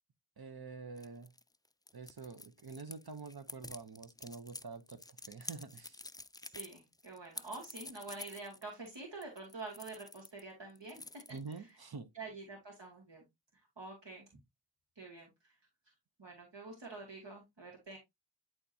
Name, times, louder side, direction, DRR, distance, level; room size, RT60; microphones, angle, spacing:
voice 1, 0.4-1.3 1.9-6.0 11.3-12.1, right 4 dB, 55° right, 0.9 m, -47 dB
sound 1, 1.0-10.4 10.7-11.7, left 2 dB, 10° left, 0.3 m, -49 dB
voice 2, 6.4-11.0 11.5-11.8 12.1-13.2 13.8-14.3 15.0-15.5 16.2-18.0, right 3 dB, 70° right, 2.4 m, -47 dB
11.0 x 3.7 x 2.7 m
wide cardioid pair, 45°, 44 cm